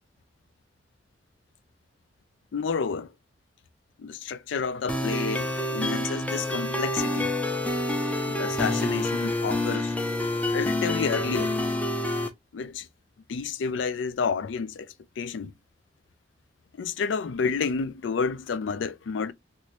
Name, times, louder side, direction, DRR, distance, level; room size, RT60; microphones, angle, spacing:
voice 1, 2.5-3.1 4.0-7.3 8.3-9.9 10.5-11.6 12.5-12.9 13.3-15.5 16.8-19.3, left 5 dB, 85° left, 0.4 m, -30 dB
sound 1, 4.9-12.3, left 1 dB, 10° left, 0.5 m, -27 dB
2.9 x 2.6 x 3.0 m
head